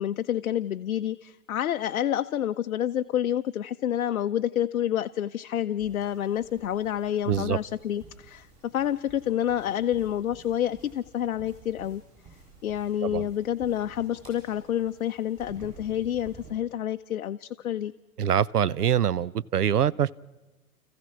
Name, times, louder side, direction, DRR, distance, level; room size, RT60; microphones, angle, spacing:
voice 1, 0.0-12.0 12.6-17.9, left 11 dB, 60° left, 8 dB, 0.6 m, -28 dB
sound 1, 5.8-16.5, right 3 dB, 30° right, 7.8 m, -51 dB
voice 2, 7.3-7.6 13.0-13.3 18.2-20.1, right 9 dB, 80° right, 20 dB, 0.6 m, -24 dB
30.0 x 15.0 x 5.9 m, 1.2 s
figure-of-eight pair, 115°, 46 cm